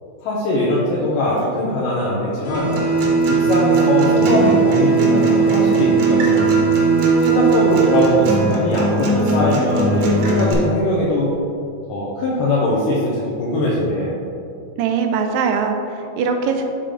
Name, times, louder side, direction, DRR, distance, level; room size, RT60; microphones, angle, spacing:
voice 1, 0.2-2.8 3.3-6.4 7.2-11.3 11.9-14.2, left 1 dB, 80° left, -7 dB, 2.5 m, -21 dB
sound 1, 2.4-8.4, right 7 dB, 65° left, 2.2 m, -18 dB
Acoustic guitar, 2.5-10.5, right 1 dB, 70° right, 1.7 m, -21 dB
voice 2, 14.8-16.6, right 5 dB, 90° right, 5 dB, 2.3 m, -21 dB
7.1 x 3.8 x 4.9 m, 2.4 s
omnidirectional pair, 3.9 m